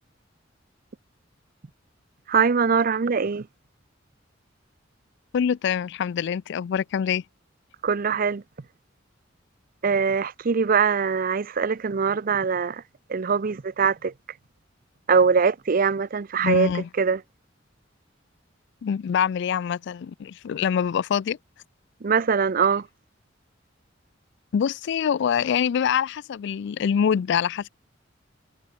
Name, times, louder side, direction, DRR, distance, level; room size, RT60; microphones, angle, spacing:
voice 1, 2.3-3.5 7.8-8.4 9.8-12.8 13.1-14.1 15.1-16.7 17.0-17.2 22.0-22.9, right 5 dB, 50° right, 0.6 m, -22 dB
voice 2, 5.3-7.2 16.4-16.9 18.8-21.4 24.5-27.7, left 7 dB, 60° left, 0.3 m, -25 dB
head